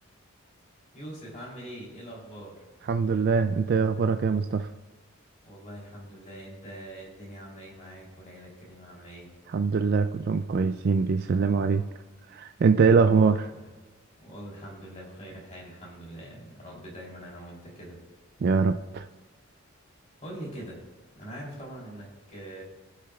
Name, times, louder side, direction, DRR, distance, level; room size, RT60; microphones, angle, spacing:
voice 1, 0.9-2.7 5.4-9.3 12.8-13.7 14.2-18.0 20.2-20.8 21.1-22.6, right 1 dB, 35° left, -4 dB, 3.1 m, -43 dB
voice 2, 2.9-4.7 9.5-11.9 12.3-13.4 18.4-19.0, right 5 dB, 50° right, 8 dB, 0.3 m, -23 dB
18.5 x 6.6 x 2.3 m, 1.3 s
head